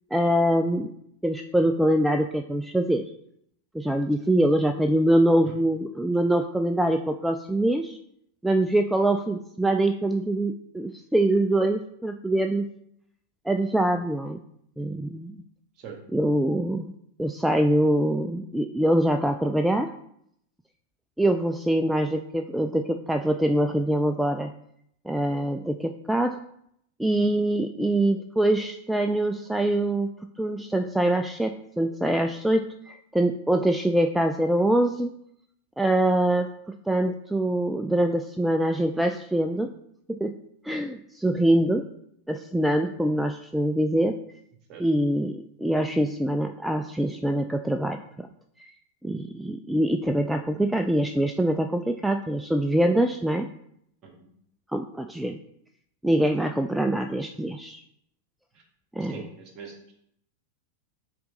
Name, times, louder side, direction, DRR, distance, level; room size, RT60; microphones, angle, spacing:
voice 1, 0.1-0.9 1.2-3.0 3.7-8.0 8.4-12.7 13.5-14.4 14.8-15.4 16.1-16.9 17.2-19.9 21.2-24.5 25.1-26.4 27.0-30.1 30.4-35.1 35.8-36.5 36.9-39.7 40.1-40.3 40.6-41.8 42.3-44.2 44.8-48.3 48.6-48.7 49.0-53.5 54.7-55.4 56.0-57.8 59.0-59.1, right 1 dB, 5° right, 6 dB, 0.3 m, -24 dB
voice 2, 59.0-59.9, right 6 dB, 35° right, 2 dB, 1.7 m, -43 dB
6.8 x 3.9 x 3.7 m, 0.73 s
figure-of-eight pair, 90°, 0 cm